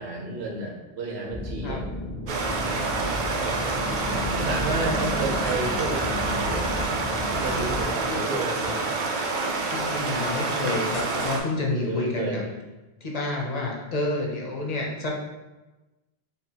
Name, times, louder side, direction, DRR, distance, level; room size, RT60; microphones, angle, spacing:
voice 1, 0.0-1.8 4.3-6.4 7.4-8.9 11.8-12.5, right 2 dB, 80° right, -1 dB, 1.1 m, -31 dB
sound 1, 1.3-7.8, left 2 dB, 90° left, 1.4 m, -33 dB
Stream, 2.3-11.4, right 3 dB, 55° right, 0.6 m, -27 dB
voice 2, 4.0-4.9 8.1-8.2 9.7-12.4 13.0-15.2, left 2 dB, 45° left, -2 dB, 0.7 m, -29 dB
sound 2, 5.4-5.6 6.2-6.6 7.2-7.3 7.8-7.9 8.6-8.8 10.9-11.4, left 1 dB, 60° left, 1.2 m, -39 dB
5.1 x 2.3 x 2.8 m, 1.1 s
omnidirectional pair, 1.1 m